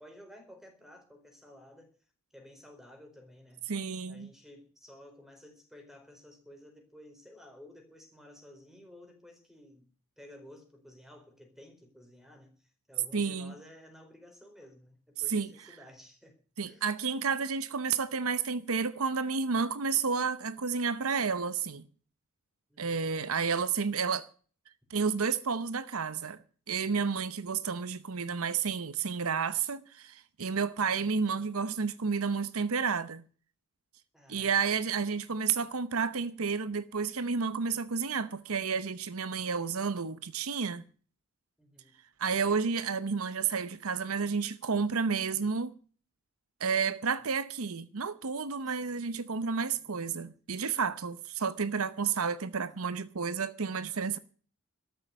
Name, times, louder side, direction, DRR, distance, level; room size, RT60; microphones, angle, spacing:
voice 1, 0.0-1.9 2.3-3.7 4.1-9.9 10.2-16.4 16.6-16.9 22.7-23.1 30.7-31.1 34.1-34.8 41.6-42.0 47.2-47.3 48.7-48.8 49.7-49.9, left 1 dB, ahead, 4.3 m, -54 dB
voice 2, 3.7-4.3 13.1-13.5 15.3-15.5 16.6-21.9 22.8-24.3 24.9-26.4 26.7-33.2 34.3-40.8 42.2-45.7 46.6-54.2, right 5 dB, 75° right, 0.8 m, -31 dB
13.5 x 7.9 x 9.4 m
head